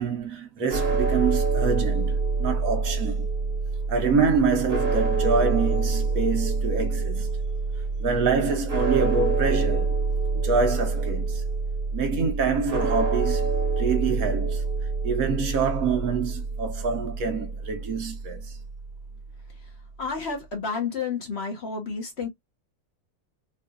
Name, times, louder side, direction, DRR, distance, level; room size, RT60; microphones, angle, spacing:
voice 1, 0.0-3.3 3.9-7.3 8.0-10.0 10.4-11.4 11.9-14.6 15.0-18.6, right 5 dB, 65° right, 1.4 m, -26 dB
sound 1, 0.7-18.9, right 4 dB, 45° right, 1.3 m, -26 dB
voice 2, 20.0-22.3, left 5 dB, 45° left, 1.3 m, -30 dB
4.1 x 2.6 x 2.4 m
omnidirectional pair, 1.6 m